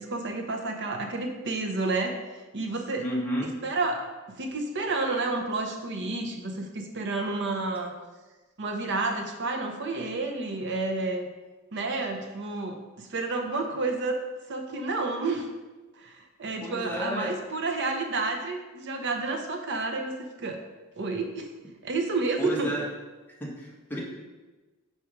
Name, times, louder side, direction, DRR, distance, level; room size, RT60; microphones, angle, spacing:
voice 1, 0.0-2.1 2.5-3.1 3.6-4.1 4.4-7.9 8.6-11.3 11.7-14.2 14.5-15.5 16.0-20.6 21.0-21.5 21.8-22.7, right 3 dB, 50° right, 4 dB, 0.7 m, -30 dB
voice 2, 3.0-3.5 16.6-17.3 22.4-22.9 23.4-24.0, equal, 10° left, -4 dB, 1.2 m, -31 dB
4.6 x 4.2 x 5.0 m, 1.2 s
head